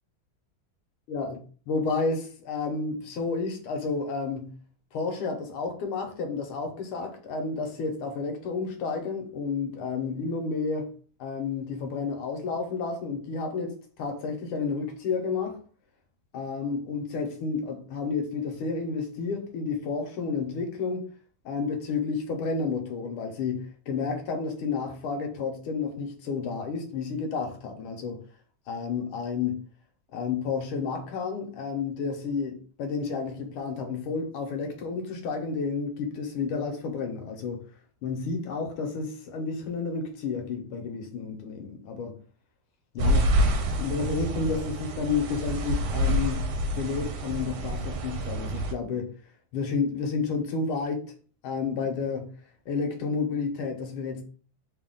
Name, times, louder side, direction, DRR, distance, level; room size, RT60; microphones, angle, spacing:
voice 1, 1.1-4.6 4.9-10.9 11.2-15.6 16.3-21.1 21.4-28.2 28.7-29.6 30.1-37.6 38.0-42.2 42.9-43.5 43.8-49.1 49.5-51.0 51.4-52.3 52.7-54.2, left 4 dB, 80° left, 1.6 m, -31 dB
sound 1, 43.0-48.7, equal, 80° right, 1.4 m, -27 dB
3.7 x 2.3 x 3.6 m
omnidirectional pair, 2.3 m